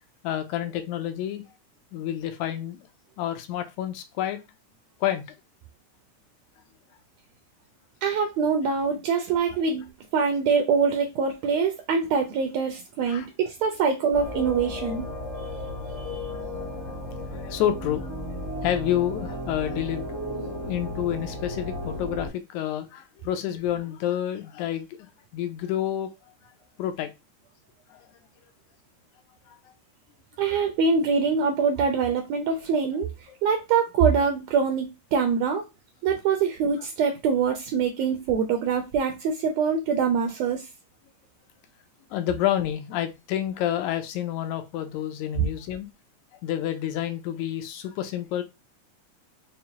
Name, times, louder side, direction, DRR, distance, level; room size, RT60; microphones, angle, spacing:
voice 1, 0.2-1.4 1.9-2.8 3.2-4.4 5.0-5.2 13.0-13.3 16.8-16.9 17.2-18.1 18.6-26.1 26.8-27.1 27.9-28.1 29.5-29.6 30.5-30.7 33.3-33.4 42.1-45.9 46.4-48.4, left 11 dB, 80° left, 1.8 m, -29 dB
voice 2, 8.0-15.1 15.4-15.5 15.9-16.3 30.4-35.6 36.0-40.7, right 5 dB, 85° right, 1.5 m, -24 dB
sound 1, 14.1-22.3, left 1 dB, 30° right, 0.6 m, -34 dB
5.3 x 2.0 x 2.8 m
omnidirectional pair, 3.6 m